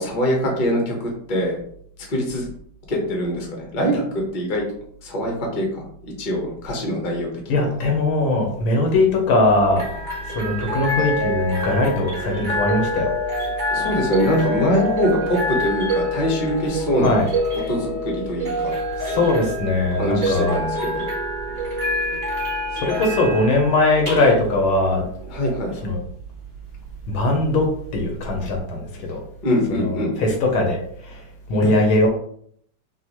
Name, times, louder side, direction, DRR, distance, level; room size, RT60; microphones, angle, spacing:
voice 1, 0.0-1.6 2.1-2.4 2.9-4.6 5.0-7.3 13.7-17.1 17.7-18.7 19.9-21.0 25.3-25.7 29.4-30.1, equal, 30° left, 0 dB, 0.9 m, -23 dB
voice 2, 7.5-9.8 10.3-13.1 16.9-17.3 19.0-20.6 22.7-25.0 25.8-26.0 27.1-27.7 27.9-29.2 29.8-31.2 31.5-32.1, left 2 dB, 80° left, 1 dB, 1.8 m, -20 dB
sound 1, 9.4-28.6, equal, 25° right, 1.5 m, -27 dB
5.8 x 2.5 x 3.0 m, 0.64 s
omnidirectional pair, 2.3 m